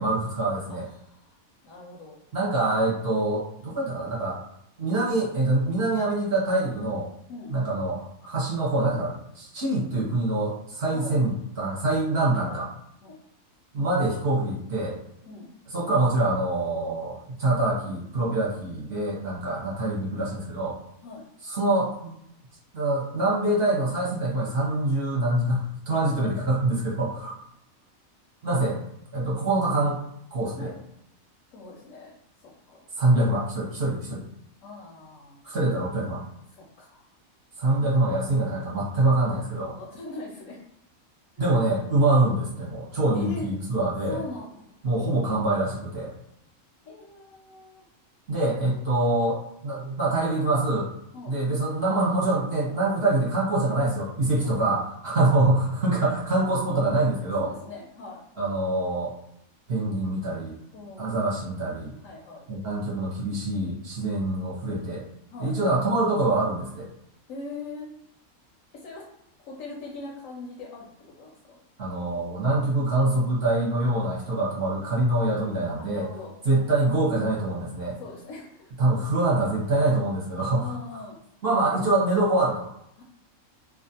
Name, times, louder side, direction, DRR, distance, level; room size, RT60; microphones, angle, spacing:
voice 1, 0.0-0.9 2.3-4.4 4.8-7.1 7.5-11.3 11.6-12.7 13.7-15.0 15.7-20.7 21.4-22.1 22.7-27.3 28.4-28.8 29.1-30.0 30.3-30.7 33.0-34.2 35.4-36.2 37.6-39.7 41.4-44.2 44.8-46.1 48.3-50.9 51.3-57.5 58.4-59.1 59.7-60.5 61.0-62.0 62.5-65.0 65.4-66.9 71.8-76.1 76.4-78.0 78.8-80.7 81.4-82.7, right 2 dB, 50° right, -6 dB, 0.9 m, -25 dB
voice 2, 0.8-1.3 1.6-2.2 7.3-7.6 10.9-11.2 12.3-12.6 13.0-13.2 15.3-15.5 21.0-21.2 30.6-30.8 31.5-32.1 32.4-32.9 34.6-35.4 36.5-37.0 39.6-40.6 41.4-41.5 43.1-43.5 44.1-44.8 46.9-47.9 51.1-51.4 54.4-54.7 57.4-58.2 60.7-61.2 62.0-62.5 65.3-65.6 67.3-67.9 68.7-69.0 69.4-70.9 71.2-71.6 75.8-76.8 78.0-78.7 80.5-81.2 83.0-83.1, left 3 dB, 70° left, -1 dB, 0.9 m, -41 dB
2.5 x 2.3 x 2.7 m, 0.78 s
omnidirectional pair, 1.5 m